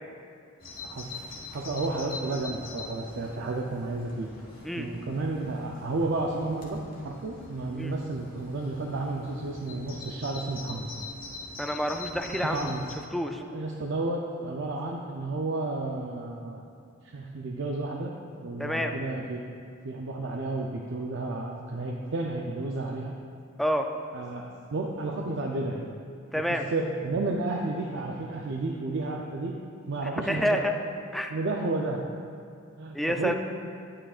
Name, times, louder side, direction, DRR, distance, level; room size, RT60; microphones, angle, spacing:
Bird vocalization bird call bird song, 0.6-12.9, left 2 dB, 45° left, 1.3 m, -43 dB
voice 1, 1.5-4.4 4.8-6.8 7.0-10.9 12.5-12.8 13.5-16.6 17.1-18.1 18.4-19.4 19.8-23.1 24.1-25.8 26.5-29.6 29.9-30.6 31.3-32.0 32.8-33.3, right 2 dB, 65° right, 0 dB, 0.5 m, -32 dB
voice 2, 11.6-12.7 13.1-13.4 18.6-18.9 23.6-23.9 26.3-26.6 30.2-30.7 31.1-31.3 32.9-33.3, equal, ahead, 4 dB, 0.4 m, -28 dB
9.9 x 8.7 x 2.4 m, 2.3 s
head